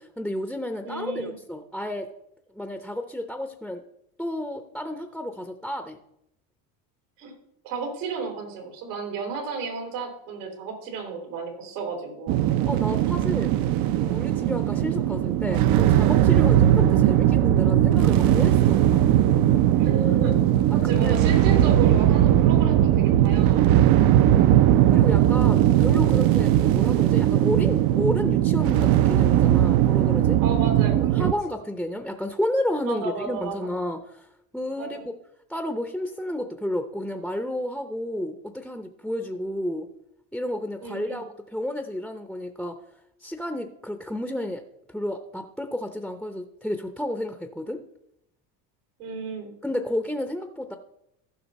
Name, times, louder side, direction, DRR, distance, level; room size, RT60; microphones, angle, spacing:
voice 1, 0.0-2.1 2.5-3.8 4.2-6.0 12.7-13.5 14.0-19.1 20.8-21.2 24.2-24.6 24.9-30.4 30.9-34.3 34.5-35.1 35.5-39.9 40.3-42.8 43.2-44.6 44.9-47.8 49.6-50.8, left 1 dB, ahead, 6 dB, 0.7 m, -31 dB
voice 2, 0.8-1.3 7.2-7.3 7.6-12.4 19.8-20.3 20.8-24.0 30.4-31.3 32.8-33.6 34.8-35.0 40.8-41.2 49.0-49.5, right 4 dB, 90° right, 2 dB, 3.7 m, -33 dB
sound 1, 12.3-31.3, right 12 dB, 50° right, 0.7 m, -19 dB
15.0 x 5.7 x 4.1 m, 0.79 s
supercardioid pair, 105°, 44 cm